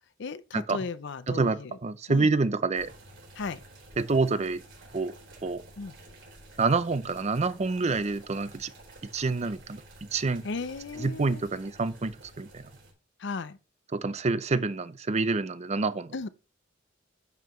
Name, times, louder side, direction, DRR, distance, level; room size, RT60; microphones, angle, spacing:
voice 1, 0.2-1.8 2.1-2.3 3.4-3.6 5.8-5.9 10.4-11.4 13.2-13.6 16.1-16.3, left 4 dB, 65° left, 0.5 m, -35 dB
voice 2, 1.3-2.9 4.0-4.6 4.9-5.1 5.4-5.6 6.6-8.7 9.1-9.8 10.1-10.4 11.0-12.6 13.9-16.1, right 3 dB, 35° right, 0.5 m, -27 dB
sound 1, 2.7-12.9, right 1 dB, 65° right, 4.5 m, -51 dB
10.5 x 5.6 x 3.1 m
head